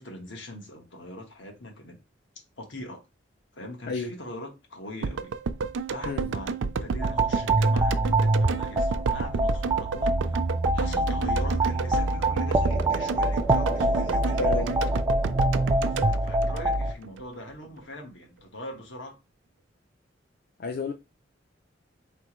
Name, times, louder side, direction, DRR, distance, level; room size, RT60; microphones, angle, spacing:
voice 1, 0.0-2.0 2.6-3.0 3.5-5.3 5.9-10.2 10.7-14.8 15.7-19.2, left 1 dB, 80° left, 1.4 m, -41 dB
sound 1, 5.0-17.2 17.5-17.6, right 4 dB, 90° right, 0.4 m, -31 dB
sound 2, 7.0-16.9, right 2 dB, 20° right, 0.3 m, -25 dB
voice 2, 14.4-14.8 20.6-20.9, left 4 dB, 55° left, 0.5 m, -30 dB
4.3 x 3.4 x 3.0 m
head